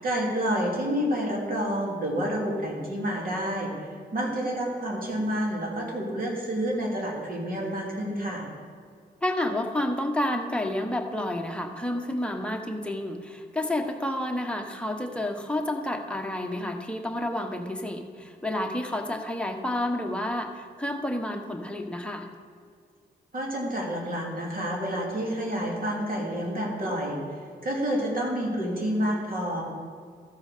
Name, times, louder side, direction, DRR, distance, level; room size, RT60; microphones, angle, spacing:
voice 1, 0.0-3.7 4.1-8.5 23.3-27.2 27.6-29.6, equal, 50° right, -2 dB, 2.9 m, -29 dB
voice 2, 9.2-22.3, left 1 dB, 5° left, 3 dB, 1.3 m, -30 dB
14.0 x 4.9 x 6.7 m, 2.1 s
cardioid pair, 60°, 18 cm